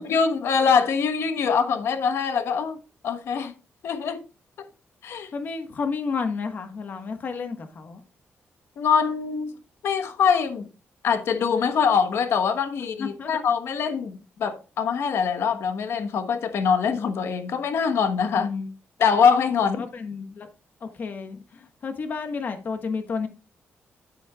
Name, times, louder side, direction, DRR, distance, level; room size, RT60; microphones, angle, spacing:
voice 1, 0.0-2.8 3.0-3.5 3.8-4.2 4.6-4.7 5.0-5.3 8.8-9.5 9.8-10.7 11.0-18.5 19.0-19.8, left 6 dB, 75° left, 1.3 m, -23 dB
voice 2, 5.3-8.0 13.0-13.3 18.3-18.7 19.8-20.5 20.8-23.3, left 5 dB, 45° left, 1.3 m, -31 dB
10.0 x 8.7 x 2.4 m
wide cardioid pair, 170°, 4 cm